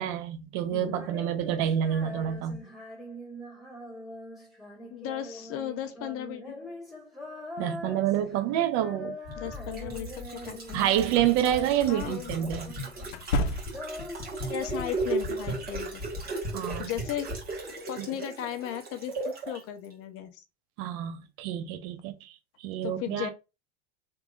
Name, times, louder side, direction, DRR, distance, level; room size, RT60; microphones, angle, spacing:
voice 1, 0.0-2.6 7.6-9.2 10.7-12.8 16.5-16.9 18.0-18.1 20.8-22.3 22.6-23.3, right 11 dB, 50° right, 0.7 m, -28 dB
voice 2, 0.7-1.0 4.9-6.6 9.4-10.7 11.9-12.3 14.5-16.0 16.8-17.3 17.9-20.4 22.8-23.3, left 11 dB, 40° left, 0.5 m, -36 dB
Female singing, 0.8-11.1 11.4-13.1 13.4-16.0, left 1 dB, ahead, 1.5 m, -43 dB
sound 1, 9.2-19.6 19.9-20.0, right 2 dB, 25° right, 1.4 m, -36 dB
sound 2, 10.9-11.0 13.1-14.1, left 1 dB, 85° left, 0.6 m, -30 dB
3.5 x 2.9 x 2.4 m
supercardioid pair, 120°, 35 cm